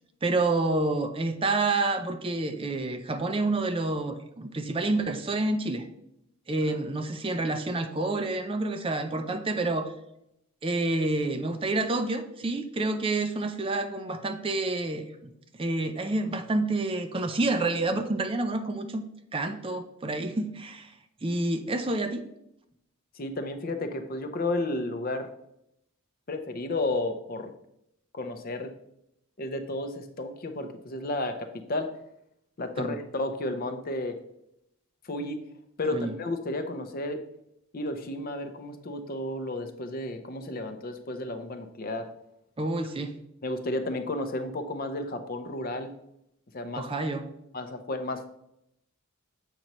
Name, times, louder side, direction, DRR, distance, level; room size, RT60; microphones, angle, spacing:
voice 1, 0.2-5.9 6.5-9.9 10.6-15.3 15.6-19.0 19.3-20.9 21.2-22.2 32.8-33.0 35.9-36.1 42.6-43.1 46.8-47.2, right 2 dB, 25° right, 7 dB, 0.4 m, -28 dB
voice 2, 23.1-25.3 26.3-27.5 28.1-28.7 29.4-31.9 32.6-34.2 35.0-35.4 35.8-37.2 37.7-42.1 43.4-45.9 46.5-46.9 47.5-48.2, left 2 dB, 40° left, 7 dB, 0.6 m, -32 dB
7.6 x 5.4 x 3.0 m, 0.79 s
head